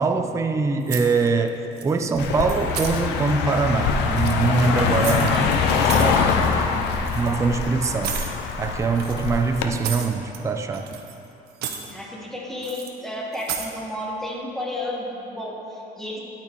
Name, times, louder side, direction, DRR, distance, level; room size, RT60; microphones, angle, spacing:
voice 1, 0.0-6.6 7.1-8.2 8.6-11.0, right 4 dB, 15° right, 6 dB, 0.4 m, -23 dB
sound 1, 0.9-1.5 1.8-2.2 2.5-2.9 4.0-5.4 5.7-6.2 7.0-7.3 8.0-8.3 8.9-10.4 10.7-11.2 11.5-11.9 12.6-12.9 13.3-13.7, right 8 dB, 75° right, 0.7 m, -33 dB
Car passing by, 2.2-9.7, left 6 dB, 90° left, 0.6 m, -23 dB
voice 2, 4.6-6.1 11.9-16.2, left 1 dB, ahead, -4 dB, 1.4 m, -33 dB
11.5 x 4.3 x 4.6 m, 2.9 s
cardioid pair, 110°, 17 cm